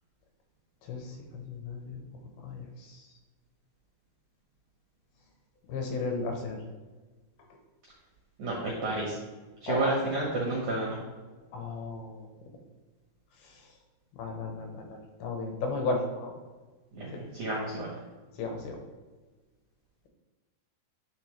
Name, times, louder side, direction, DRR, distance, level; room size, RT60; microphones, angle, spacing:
voice 1, 0.8-2.0 2.4-3.1 5.7-6.6 9.7-9.9 11.5-12.3 13.4-13.7 14.2-16.3 18.4-18.8, left 3 dB, 75° left, 2 dB, 2.5 m, -35 dB
voice 2, 8.4-9.2 9.6-11.0 16.9-17.9, right 2 dB, 75° right, -4 dB, 1.7 m, -30 dB
10.5 x 3.5 x 3.1 m, 1.3 s
omnidirectional pair, 5.0 m